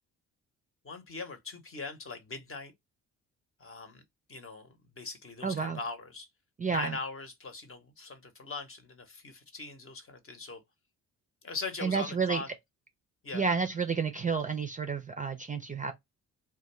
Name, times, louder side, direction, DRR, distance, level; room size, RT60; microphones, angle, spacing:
voice 1, 0.8-2.7 3.6-4.0 4.3-6.3 6.7-10.6 11.4-12.5 13.2-13.4, left 3 dB, 35° left, 0.9 m, -41 dB
voice 2, 5.4-5.8 6.6-7.0 11.8-12.4 13.3-15.9, right 5 dB, 20° right, 0.4 m, -30 dB
2.3 x 2.2 x 3.0 m
hypercardioid pair, 50°, 39 cm